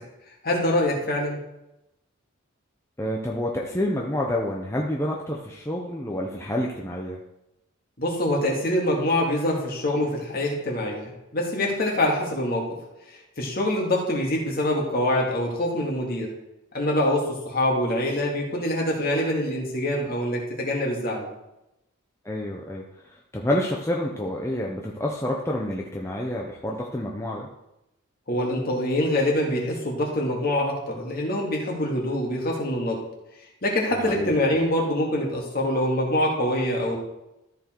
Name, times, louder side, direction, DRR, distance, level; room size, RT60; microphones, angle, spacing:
voice 1, 0.4-1.4 8.0-12.7 13.1-16.3 16.7-21.3 28.3-33.0 33.6-37.0, left 1 dB, 45° left, -2 dB, 2.2 m, -25 dB
voice 2, 3.0-7.2 22.2-27.5 34.1-34.3, left 1 dB, 15° left, -2 dB, 0.7 m, -28 dB
13.5 x 4.6 x 4.6 m, 0.89 s
head